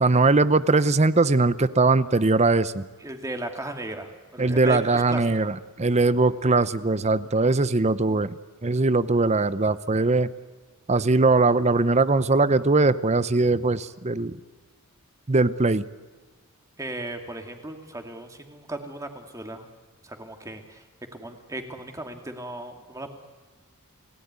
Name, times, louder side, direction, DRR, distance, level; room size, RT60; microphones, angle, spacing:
voice 1, 0.0-2.8 4.4-10.3 10.9-14.4 15.3-15.8, right 3 dB, 30° right, 15 dB, 0.7 m, -21 dB
voice 2, 3.0-5.5 16.8-19.7 20.0-20.8 21.1-23.1, right 1 dB, 15° right, 5 dB, 2.4 m, -36 dB
29.5 x 18.0 x 9.6 m, 1.4 s
head